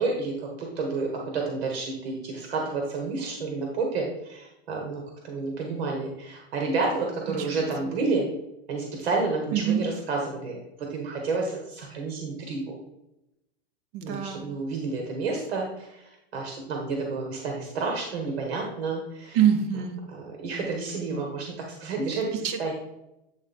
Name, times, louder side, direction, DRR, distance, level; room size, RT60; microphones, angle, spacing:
voice 1, 0.0-8.3 8.7-12.8 14.0-16.0 16.3-19.4 20.1-21.5 21.8-22.7, right 3 dB, 75° right, 1 dB, 1.4 m, -30 dB
voice 2, 7.3-7.9 9.5-9.8 13.9-14.5 19.3-20.0 22.3-22.7, right 9 dB, 25° right, 6 dB, 0.6 m, -26 dB
8.7 x 3.5 x 4.1 m, 0.89 s
supercardioid pair, 180°, 32 cm